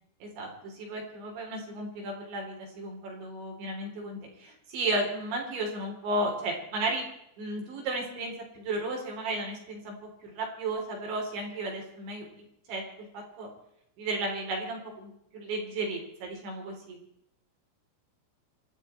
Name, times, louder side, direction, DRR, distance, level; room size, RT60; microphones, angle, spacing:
voice 1, 0.2-7.0 7.4-10.0 10.2-12.8 13.1-13.5 14.0-17.0, right 2 dB, 65° right, 0 dB, 6.0 m, -34 dB
27.0 x 12.0 x 4.5 m, 0.76 s
omnidirectional pair, 5.6 m